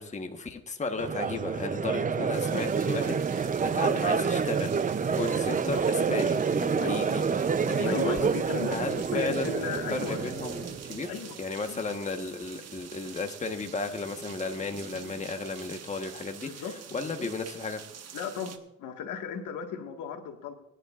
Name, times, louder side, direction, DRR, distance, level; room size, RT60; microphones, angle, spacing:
voice 1, 0.0-7.3 7.7-8.2 8.7-16.6 16.9-17.8, left 3 dB, 25° left, 5 dB, 1.2 m, -35 dB
Crowd, 1.0-11.1, right 5 dB, 25° right, 0.6 m, -28 dB
sound 1, 2.3-18.6, right 7 dB, 55° right, 1.3 m, -46 dB
voice 2, 7.9-8.8 9.1-10.3 11.1-11.4 11.7-11.8 16.4-16.7 17.0-17.1 18.1-20.5, left 7 dB, 80° left, 4 dB, 1.7 m, -36 dB
22.0 x 10.5 x 2.5 m, 0.82 s
cardioid pair, 90°, 30 cm